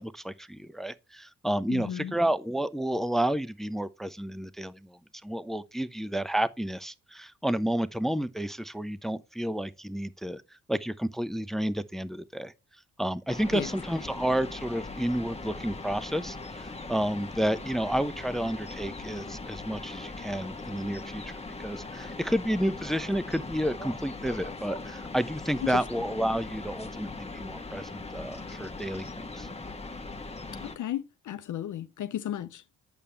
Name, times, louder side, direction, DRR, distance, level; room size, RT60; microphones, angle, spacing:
voice 1, 0.0-10.4 10.7-12.5 13.0-21.2 21.6-29.5, right 1 dB, ahead, 0.7 m, -31 dB
voice 2, 1.7-2.2 13.5-13.7 25.6-25.9 30.6-32.6, left 11 dB, 60° left, 0.7 m, -34 dB
sound 1, 13.3-30.8, left 3 dB, 20° left, 1.3 m, -40 dB
8.4 x 7.0 x 3.4 m
supercardioid pair, 50°, 35 cm